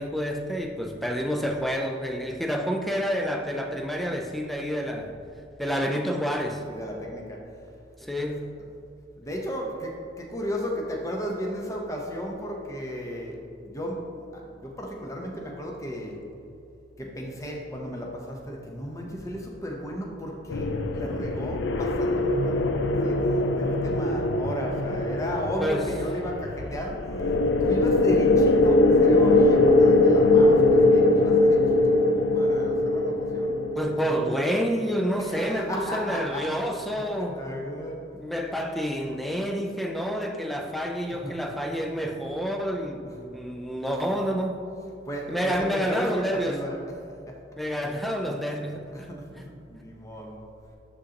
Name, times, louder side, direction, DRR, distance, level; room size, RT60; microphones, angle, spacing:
voice 1, 0.0-5.1 5.6-6.6 8.0-8.4 25.6-25.9 33.8-37.4 38.1-44.6 45.3-46.6 47.6-49.1, equal, ahead, 3 dB, 0.4 m, -28 dB
voice 2, 6.7-7.4 8.2-8.3 9.2-16.2 17.0-27.1 27.4-33.7 35.2-36.5 37.2-38.0 41.1-41.4 43.0-43.3 43.9-44.1 45.1-46.8 48.9-50.4, equal, 15° left, -1 dB, 0.7 m, -34 dB
sound 1, 20.5-34.3, left 2 dB, 75° left, 0.4 m, -21 dB
11.5 x 3.8 x 2.9 m, 2.6 s
head